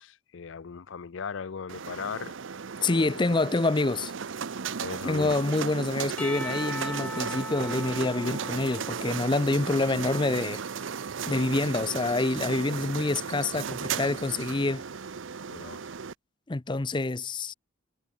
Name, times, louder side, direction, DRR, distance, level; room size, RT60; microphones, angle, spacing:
voice 1, 0.0-2.4 2.8-3.2 4.8-5.4 15.5-15.8, left 6 dB, 65° left, 0.5 m, -38 dB
sound 1, 1.7-16.1, right 6 dB, 65° right, 0.7 m, -35 dB
voice 2, 2.8-4.1 5.0-10.6 11.3-14.8 16.5-17.5, left 2 dB, 25° left, 0.6 m, -27 dB
Percussion / Church bell, 6.2-10.4, left 1 dB, 5° left, 1.2 m, -40 dB
head